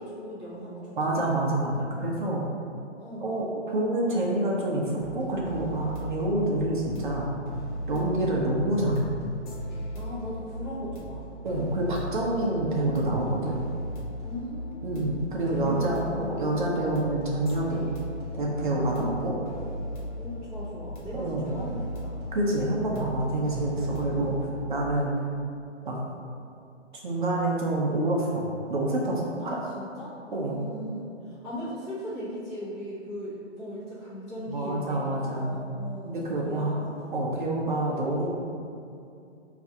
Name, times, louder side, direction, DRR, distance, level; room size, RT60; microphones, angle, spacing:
voice 1, 0.0-1.7 3.0-3.5 7.9-8.2 9.9-11.2 13.1-13.5 14.2-15.1 15.5-16.2 18.9-19.2 20.1-22.1 23.9-24.4 29.4-37.1, equal, 10° left, -12 dB, 0.6 m, -39 dB
voice 2, 1.0-2.4 3.2-7.3 7.9-9.1 11.4-13.6 14.8-17.9 18.3-19.3 21.1-21.5 22.3-24.3 24.7-25.1 25.8-26.0 27.0-28.4 28.7-29.6 30.3-30.6 34.5-35.7 36.0-36.8 37.1-38.3, right 1 dB, 45° right, -3 dB, 0.5 m, -27 dB
sound 1, 5.0-24.7, equal, 40° left, 0.9 m, -37 dB
5.2 x 2.4 x 2.7 m, 2.5 s
hypercardioid pair, 160°, 36 cm